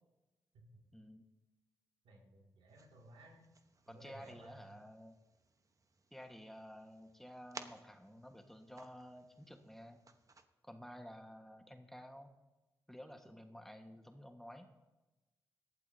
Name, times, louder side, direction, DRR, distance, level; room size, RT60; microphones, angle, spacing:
voice 1, 0.9-1.3 3.9-5.2 6.1-10.0 10.6-12.3 12.9-14.7, equal, 5° left, 5 dB, 1.5 m, -52 dB
voice 2, 2.0-3.4 3.9-4.8, right 1 dB, 80° right, -1 dB, 2.4 m, -58 dB
sound 1, 2.7-10.5, right 3 dB, 40° right, 1.1 m, -58 dB
18.0 x 12.0 x 2.8 m, 1.1 s
supercardioid pair, 45°, 9 cm